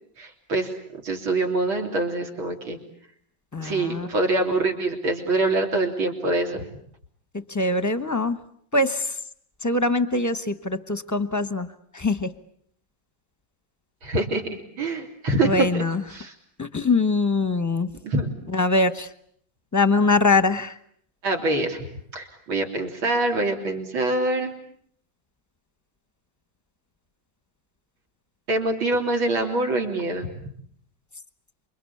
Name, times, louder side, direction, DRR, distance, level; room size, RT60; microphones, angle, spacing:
voice 1, 0.2-0.7 1.0-2.8 3.6-6.7 14.0-15.8 16.1-16.3 18.0-18.3 21.2-21.8 22.1-24.5 28.5-30.3, right 2 dB, 90° right, 3 dB, 4.2 m, -25 dB
voice 2, 3.5-4.1 7.5-8.4 8.7-9.2 9.6-11.7 11.9-12.3 15.4-16.0 16.6-17.9 18.5-19.1 19.7-20.7, left 3 dB, 15° left, 13 dB, 0.8 m, -22 dB
28.0 x 24.5 x 8.6 m, 0.65 s
omnidirectional pair, 2.2 m